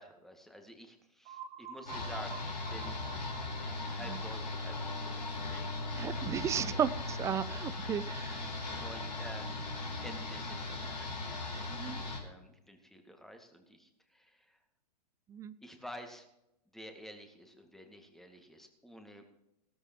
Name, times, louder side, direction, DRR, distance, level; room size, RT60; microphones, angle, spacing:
voice 1, 0.0-3.0 3.9-5.6 6.7-6.9 8.8-14.6 15.6-16.3 16.7-19.2, equal, ahead, 4 dB, 2.0 m, -50 dB
sound 1, 1.2-6.9, right 7 dB, 35° right, 1.3 m, -51 dB
sound 2, 1.9-12.2, left 2 dB, 80° left, 4.4 m, -38 dB
voice 2, 5.9-8.5 11.7-12.0 15.3-15.6, right 8 dB, 15° right, 18 dB, 0.4 m, -34 dB
17.0 x 13.5 x 3.0 m, 0.86 s
figure-of-eight pair, 105°, 21 cm